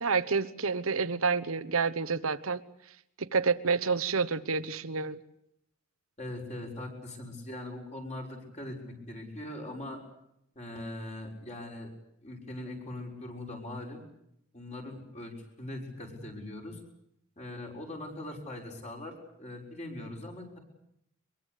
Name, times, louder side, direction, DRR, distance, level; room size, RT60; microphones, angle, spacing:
voice 1, 0.0-2.6 3.2-5.2, right 5 dB, 85° right, 14 dB, 1.2 m, -29 dB
voice 2, 6.2-10.0 10.5-11.9 12.2-14.0 14.5-16.8 17.4-20.6, left 1 dB, 35° left, 1 dB, 6.3 m, -41 dB
24.0 x 22.5 x 8.4 m, 0.76 s
head